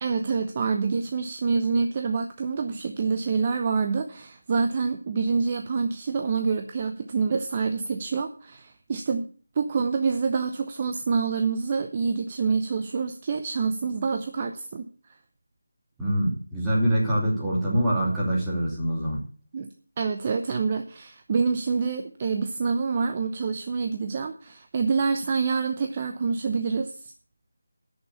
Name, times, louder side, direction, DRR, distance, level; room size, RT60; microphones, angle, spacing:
voice 1, 0.0-9.3 9.6-14.9 19.5-19.7 20.0-27.1, right 5 dB, 25° right, 6 dB, 0.7 m, -27 dB
voice 2, 16.0-19.2, equal, 5° right, -8 dB, 2.7 m, -24 dB
9.8 x 6.7 x 8.3 m, 0.41 s
figure-of-eight pair, 170°, 0 cm